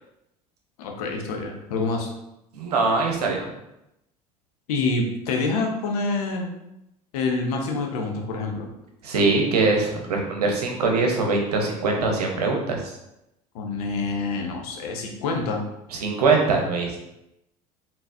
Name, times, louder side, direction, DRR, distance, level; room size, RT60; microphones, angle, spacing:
voice 1, 0.8-2.1 4.7-6.5 7.1-8.7 13.5-15.6, left 3 dB, 70° left, 2 dB, 0.9 m, -27 dB
voice 2, 2.5-3.5 9.0-12.9 15.9-17.0, right 3 dB, 80° right, 1 dB, 0.9 m, -22 dB
4.3 x 3.8 x 2.6 m, 0.86 s
hypercardioid pair, 70°, 20 cm